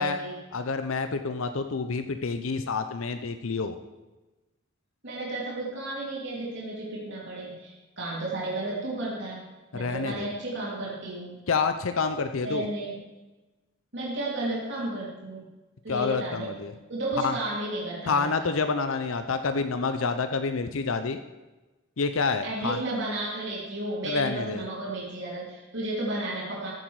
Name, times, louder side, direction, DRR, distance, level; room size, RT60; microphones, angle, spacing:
voice 1, 0.0-0.3 5.0-9.5 9.7-11.4 12.4-13.0 13.9-15.5 15.8-16.5 16.9-18.5 22.4-26.7, right 2 dB, 60° right, -6 dB, 3.2 m, -33 dB
voice 2, 0.5-3.8 9.7-10.3 11.5-12.7 15.9-16.7 17.2-17.4 18.1-21.2 22.0-22.8 24.0-24.6, left 4 dB, 85° left, 9 dB, 0.7 m, -28 dB
14.0 x 8.0 x 4.8 m, 1.1 s
head